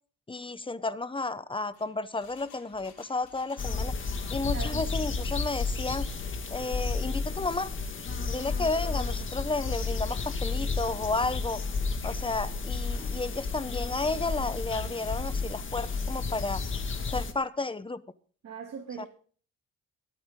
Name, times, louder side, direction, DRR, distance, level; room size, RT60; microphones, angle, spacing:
voice 1, 0.3-3.9 4.3-6.1 6.5-7.7 8.3-11.6 12.0-16.6 17.1-18.0 19.0-19.1, left 3 dB, 15° left, 15 dB, 0.9 m, -32 dB
Engine, 1.5-4.5 4.7-5.3 5.8-6.3 6.7-6.8, left 7 dB, 80° left, 4.3 m, -56 dB
sound 1, 3.6-17.3, left 4 dB, 40° left, 2.1 m, -32 dB
voice 2, 18.4-19.1, right 7 dB, 60° right, -1 dB, 2.8 m, -39 dB
22.0 x 8.6 x 3.8 m, 0.43 s
cardioid pair, 90°, 30 cm